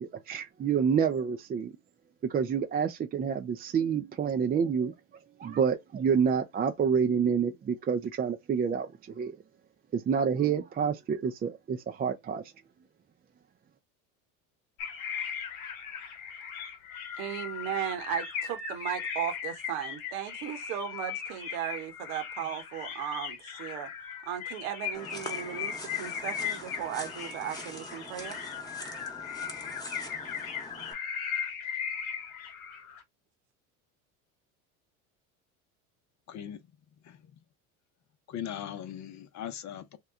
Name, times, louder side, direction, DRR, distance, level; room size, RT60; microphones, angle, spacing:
voice 1, 0.0-1.7 2.3-4.9 5.4-9.3 9.9-12.4, right 7 dB, 25° right, 0.4 m, -28 dB
sound 1, 14.8-33.0, left 7 dB, 80° left, 1.1 m, -38 dB
voice 2, 17.2-23.9 24.3-28.4, right 10 dB, 70° right, 1.1 m, -36 dB
sound 2, 24.9-30.9, left 1 dB, 10° left, 1.1 m, -44 dB
voice 3, 36.3-36.7 37.0-37.2 38.3-40.0, left 10 dB, 40° left, 0.7 m, -39 dB
2.9 x 2.3 x 3.6 m
hypercardioid pair, 85°, 42 cm